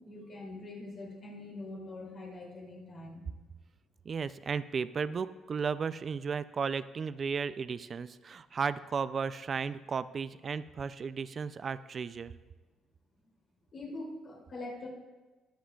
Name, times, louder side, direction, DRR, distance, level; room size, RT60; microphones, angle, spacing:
voice 1, 0.0-3.2 13.7-14.9, left 2 dB, 40° left, -3 dB, 2.6 m, -43 dB
voice 2, 4.1-12.3, right 5 dB, 35° right, 14 dB, 0.3 m, -34 dB
20.5 x 7.4 x 2.3 m, 1.2 s
cardioid pair, 135°, 0 cm